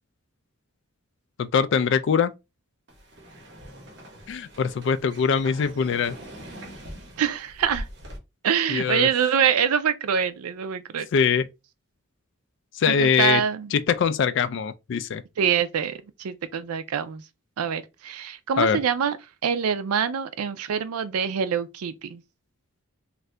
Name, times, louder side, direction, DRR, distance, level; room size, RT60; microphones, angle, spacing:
voice 1, 1.4-2.3 4.3-6.2 8.7-9.1 11.1-11.5 12.8-13.4 13.7-15.2 18.6-18.8, left 6 dB, 55° left, 0.3 m, -22 dB
sound 1, 2.9-8.2, equal, 55° right, 1.1 m, -42 dB
voice 2, 7.2-7.9 8.4-11.1 12.9-13.7 15.4-17.2 17.6-19.2 19.4-22.2, right 7 dB, 90° right, 0.4 m, -25 dB
2.6 x 2.5 x 3.2 m
head